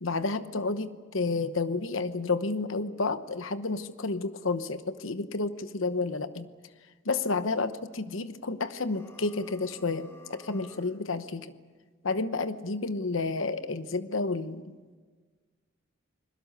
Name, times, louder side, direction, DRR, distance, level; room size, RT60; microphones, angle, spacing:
voice 1, 0.0-6.5 7.0-11.5 12.0-14.7, left 3 dB, 75° left, 11 dB, 1.0 m, -30 dB
sound 1, 8.8-11.0, left 1 dB, 15° left, 2.2 m, -52 dB
29.0 x 21.5 x 6.7 m, 1.4 s
head